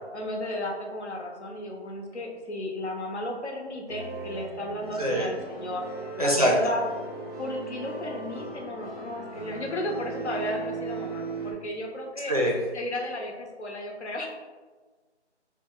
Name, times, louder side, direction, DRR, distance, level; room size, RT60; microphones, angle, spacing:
voice 1, 0.1-5.9 6.2-6.8 7.4-12.3 12.7-14.3, left 1 dB, 75° left, 1 dB, 0.8 m, -34 dB
sound 1, 3.9-11.5, right 4 dB, 35° left, 0.5 m, -38 dB
voice 2, 6.2-6.5 12.3-12.5, equal, 35° right, -3 dB, 0.4 m, -23 dB
2.9 x 2.1 x 3.9 m, 1.3 s
hypercardioid pair, 180°, 34 cm